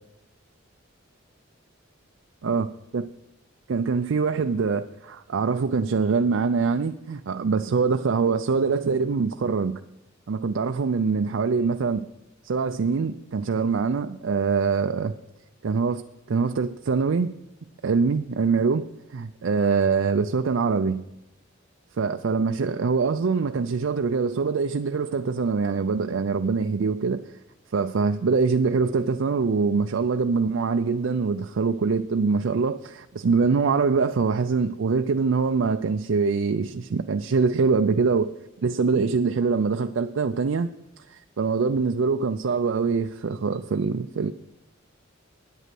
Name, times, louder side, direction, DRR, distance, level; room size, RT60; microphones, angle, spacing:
voice 1, 2.4-3.1 3.7-9.8 10.3-12.1 12.4-15.2 15.6-16.0 16.3-17.4 17.8-21.0 22.0-27.3 27.7-38.3 38.6-40.7 41.1-44.3, right 5 dB, 65° right, 0.4 m, -24 dB
9.9 x 8.2 x 7.6 m
head